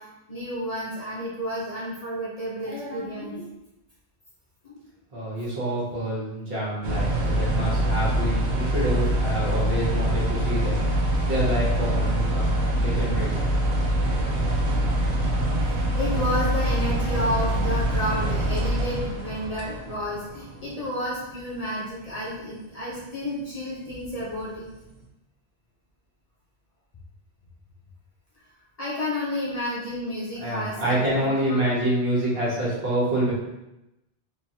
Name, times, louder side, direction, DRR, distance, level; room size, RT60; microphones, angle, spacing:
voice 1, 0.0-3.4 4.6-4.8 11.0-11.3 14.6-14.9 15.6-24.7 28.8-31.7, left 1 dB, 35° left, -7 dB, 0.8 m, -31 dB
voice 2, 5.1-12.5 12.8-13.3 30.4-33.3, right 1 dB, 60° right, -7 dB, 1.5 m, -27 dB
sound 1, 6.8-20.9 21.2-21.5 22.1-22.3 23.3-23.4 23.9-24.7 25.0-25.1, right 1 dB, 75° right, 1.0 m, -25 dB
3.9 x 3.0 x 2.8 m, 0.94 s
omnidirectional pair, 1.1 m